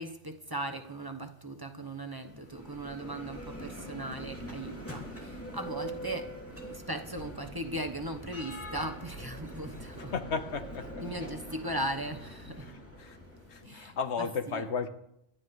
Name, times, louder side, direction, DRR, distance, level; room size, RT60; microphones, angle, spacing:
voice 1, 0.0-10.1 11.0-12.7 13.6-14.6, right 1 dB, 20° right, 1.0 m, -38 dB
Bell, 2.2-14.0, equal, 10° left, 2.7 m, -44 dB
voice 2, 10.1-11.0 12.6-13.2 13.5-14.9, left 5 dB, 90° left, 1.4 m, -34 dB
26.5 x 12.0 x 3.2 m
omnidirectional pair, 1.1 m